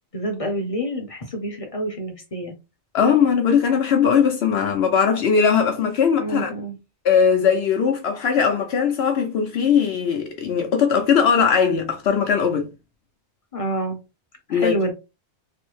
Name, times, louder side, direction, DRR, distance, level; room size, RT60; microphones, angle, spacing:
voice 1, 0.1-2.5 6.2-6.8 13.5-14.0 14.5-14.9, equal, 35° left, 0.7 m, -27 dB
voice 2, 2.9-6.5 7.0-12.7 14.5-14.8, left 6 dB, 70° left, 0.8 m, -19 dB
3.3 x 2.1 x 3.1 m
omnidirectional pair, 1.1 m